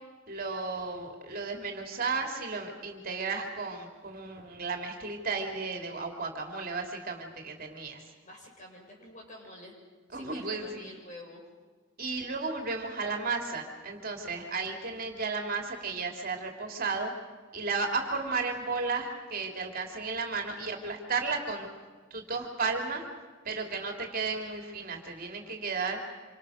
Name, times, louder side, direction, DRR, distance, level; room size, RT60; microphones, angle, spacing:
voice 1, 0.3-8.0 10.1-10.9 12.0-17.1 17.5-21.7 22.1-23.1 23.4-26.0, right 4 dB, 50° right, 3 dB, 3.2 m, -34 dB
voice 2, 8.2-9.8 10.1-11.4, left 1 dB, 40° left, -1 dB, 7.0 m, -48 dB
27.0 x 25.5 x 6.5 m, 1.4 s
head